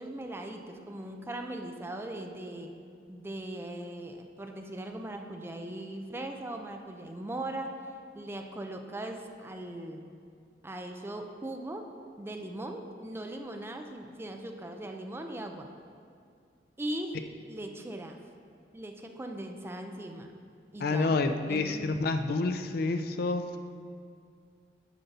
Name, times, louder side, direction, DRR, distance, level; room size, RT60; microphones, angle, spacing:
voice 1, 0.0-2.7 3.1-7.8 8.1-10.1 10.6-11.9 12.2-15.7 16.8-17.2 17.5-18.2 18.7-20.3 20.7-21.2 21.5-21.9, right 1 dB, 15° right, 4 dB, 0.4 m, -39 dB
voice 2, 20.8-23.5, left 3 dB, 60° left, 8 dB, 0.4 m, -28 dB
9.2 x 5.4 x 4.1 m, 2.3 s
head